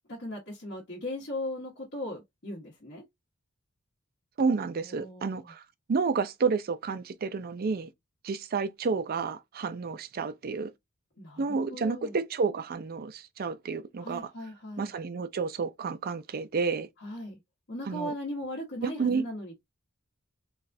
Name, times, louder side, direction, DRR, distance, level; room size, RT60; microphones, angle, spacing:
voice 1, 0.0-3.0 4.8-5.5 11.2-12.2 14.0-14.9 17.0-17.4 17.7-19.6, left 1 dB, 55° left, 1.4 m, -38 dB
voice 2, 4.4-5.6 5.9-7.9 8.2-10.7 11.4-14.3 14.8-16.9 17.9-18.1 18.8-19.2, right 4 dB, 45° right, 0.4 m, -30 dB
3.9 x 2.4 x 2.6 m
head